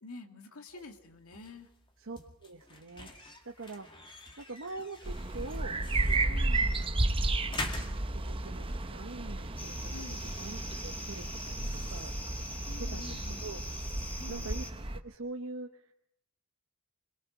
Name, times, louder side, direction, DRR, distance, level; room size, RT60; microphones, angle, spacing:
voice 1, 0.0-1.7 6.3-6.8 9.9-10.3 12.7-13.5 14.2-14.7, left 2 dB, 85° left, 5 dB, 2.0 m, -48 dB
sound 1, 0.7-13.4, left 2 dB, 25° left, 2.1 m, -47 dB
voice 2, 2.0-3.9 4.4-5.7 6.1-6.3 8.1-11.6 11.9-12.1 12.8-13.6 14.3-14.6 15.0-15.7, right 3 dB, 65° right, 3 dB, 1.0 m, -44 dB
sound 2, 5.0-15.0, right 2 dB, 25° right, 0.9 m, -33 dB
sound 3, 9.6-14.7, equal, 10° left, 1.9 m, -44 dB
26.0 x 22.0 x 5.1 m, 0.74 s
head